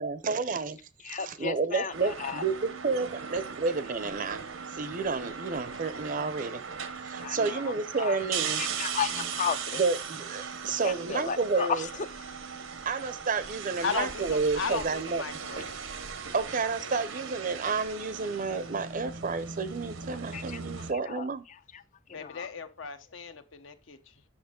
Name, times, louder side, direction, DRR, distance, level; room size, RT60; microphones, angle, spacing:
voice 1, 0.0-0.8 1.2-4.4 4.7-6.6 7.0-8.6 9.8-11.9 12.9-15.2 16.3-21.4, right 4 dB, 40° right, 0.5 m, -30 dB
voice 2, 1.1-2.4 7.2-8.2 8.6-9.8 10.8-11.8 20.3-20.6 21.1-21.2 21.7-21.8 22.1-22.5, left 7 dB, 40° left, 0.4 m, -34 dB
sound 1, 1.9-20.9, right 6 dB, 90° right, 1.0 m, -38 dB
voice 3, 13.8-15.8 22.1-24.0, left 5 dB, 70° left, 0.8 m, -35 dB
8.0 x 6.1 x 3.7 m
head